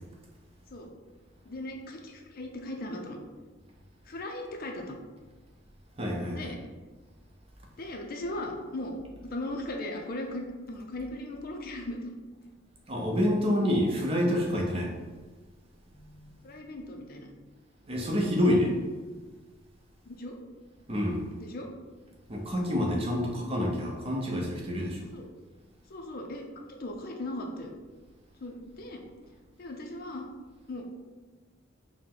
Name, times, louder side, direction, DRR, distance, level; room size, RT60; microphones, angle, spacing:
voice 1, 1.5-3.2 4.1-5.0 6.3-6.6 7.8-9.0 9.3-12.1 16.4-17.3 20.1-20.4 21.3-21.7 25.1-25.3 25.9-27.7 28.4-29.0 29.6-30.3 30.7-30.8, left 1 dB, 50° left, 2 dB, 0.5 m, -38 dB
voice 2, 6.0-6.5 12.9-14.9 16.0-16.3 17.9-18.7 20.9-21.2 22.3-25.1, left 1 dB, 30° right, -1 dB, 0.7 m, -27 dB
4.7 x 2.1 x 3.7 m, 1.3 s
head